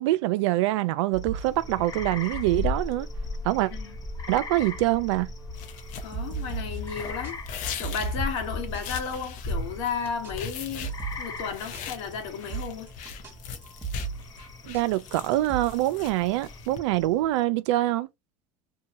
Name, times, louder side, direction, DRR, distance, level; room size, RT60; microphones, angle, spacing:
voice 1, 0.0-3.1 3.4-3.7 4.3-5.3 14.7-18.1, right 16 dB, 85° right, 0.4 m, -25 dB
sound 1, 1.1-17.4, left 3 dB, 25° left, 0.8 m, -38 dB
sound 2, 1.1-6.9 7.2-7.3 7.6-8.4 8.7-8.8 9.1-9.2 9.5-11.4 11.7-11.8 12.1-12.2 12.5-13.3 13.6-14.4 14.7-16.1, right 6 dB, 15° right, 1.1 m, -39 dB
sound 3, 5.5-16.8, left 7 dB, 60° left, 0.7 m, -41 dB
voice 2, 6.0-7.4 7.8-12.9, left 6 dB, 80° left, 1.2 m, -33 dB
2.8 x 2.2 x 2.8 m
supercardioid pair, 110°, 15 cm